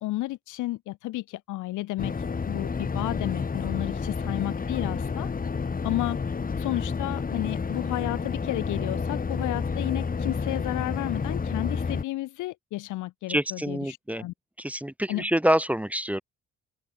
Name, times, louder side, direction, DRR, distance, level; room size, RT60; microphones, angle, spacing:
voice 1, 0.0-2.1 2.5-5.3 5.8-6.2 6.6-14.3 15.1-15.3, left 17 dB, 85° left, 0.8 m, -32 dB
sound 1, 2.0-12.0, left 5 dB, 30° left, 1.5 m, -30 dB
voice 2, 13.3-14.3 14.6-16.2, equal, 5° right, 1.3 m, -26 dB
cardioid pair, 90°, 30 cm